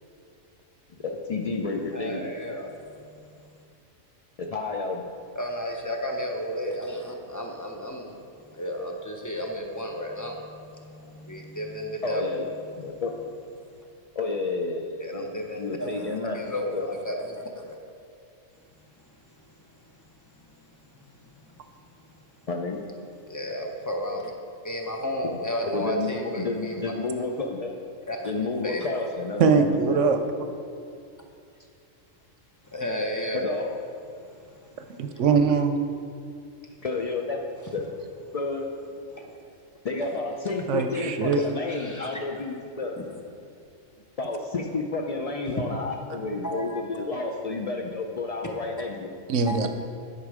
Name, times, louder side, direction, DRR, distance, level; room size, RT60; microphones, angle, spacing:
voice 1, 0.9-2.3 4.4-5.0 12.0-12.5 12.8-13.1 14.1-16.9 22.5-22.8 25.6-27.7 28.2-30.0 33.3-33.7 36.4-36.5 36.8-37.9 38.3-38.7 39.8-43.0 44.2-49.1, left 3 dB, 75° left, 1 dB, 0.3 m, -30 dB
voice 2, 1.9-3.1 5.3-8.2 8.5-12.2 15.0-17.8 19.6-20.0 20.3-21.7 22.0-22.5 23.3-24.3 24.6-26.9 28.1-28.3 28.6-28.9 32.6-33.6 34.3-35.2 39.1-39.4 41.3-42.2 43.0-43.1 45.5-45.7 46.4-46.8 49.5-49.7, equal, 20° left, 1 dB, 0.5 m, -34 dB
voice 3, 29.4-30.2 34.9-35.7 40.7-41.4 49.3-49.7, right 5 dB, 70° right, 7 dB, 0.9 m, -22 dB
9.6 x 5.7 x 4.9 m, 2.5 s
omnidirectional pair, 1.4 m